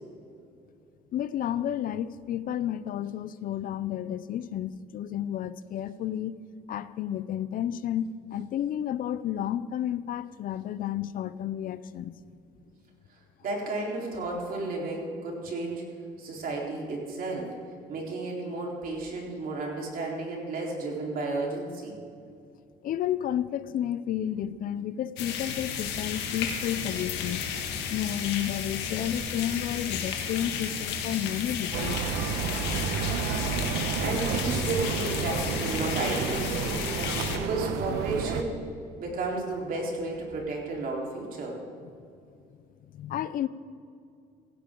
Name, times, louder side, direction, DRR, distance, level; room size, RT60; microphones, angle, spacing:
voice 1, 1.1-6.4 6.7-12.1 22.8-27.5 27.9-32.0 42.9-43.5, left 10 dB, 55° left, 16 dB, 0.6 m, -31 dB
voice 2, 13.1-15.8 16.2-17.5 17.9-22.0 34.0-38.6 39.0-41.6, right 2 dB, 60° right, -2 dB, 4.0 m, -33 dB
sound 1, 25.2-37.4, left 7 dB, 90° left, 1.8 m, -33 dB
sound 2, 31.7-38.4, right 6 dB, 85° right, 1.0 m, -31 dB
16.5 x 16.0 x 3.9 m, 2.5 s
cardioid pair, 110°, 17 cm